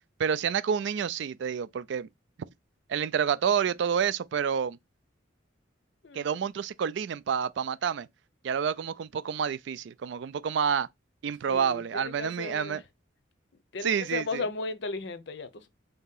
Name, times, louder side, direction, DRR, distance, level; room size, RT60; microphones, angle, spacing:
voice 1, 0.2-2.1 2.9-4.8 6.1-8.1 8.4-10.9 11.2-12.8 13.8-14.4, right 7 dB, 65° right, 0.3 m, -28 dB
voice 2, 6.0-6.4 11.5-12.8 13.7-15.7, left 3 dB, 60° left, 0.6 m, -36 dB
3.9 x 2.8 x 3.6 m
head